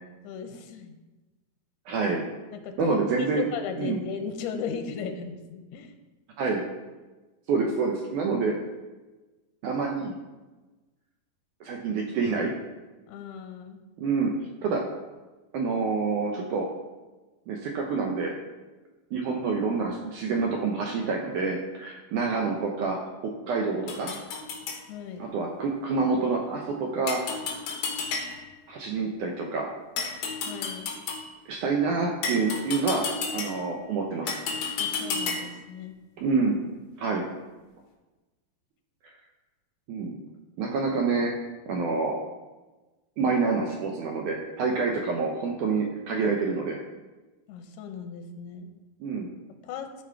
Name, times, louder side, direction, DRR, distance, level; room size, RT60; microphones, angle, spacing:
voice 1, 0.2-1.0 2.5-5.9 13.1-13.8 24.9-25.3 30.4-30.9 34.8-36.0 47.5-48.7 49.6-49.9, left 6 dB, 85° left, 6 dB, 2.9 m, -37 dB
voice 2, 1.9-2.3 2.8-3.5 3.8-4.0 6.4-6.6 7.5-8.6 9.6-10.1 11.6-12.5 14.0-14.3 14.6-14.8 15.5-16.7 17.5-18.3 19.1-23.0 23.2-24.2 25.2-27.2 28.7-29.7 31.5-33.0 33.3-34.4 36.2-36.6 37.0-37.3 39.9-40.2 40.6-41.3 41.7-42.2 43.2-46.8 49.0-49.3, right 4 dB, 80° right, 0 dB, 1.8 m, -27 dB
sound 1, 23.9-24.8 27.1-28.6 30.0-31.3 32.2-33.8 34.3-35.6, left 4 dB, 70° left, 3.1 m, -32 dB
12.5 x 5.0 x 4.6 m, 1.2 s
omnidirectional pair, 4.6 m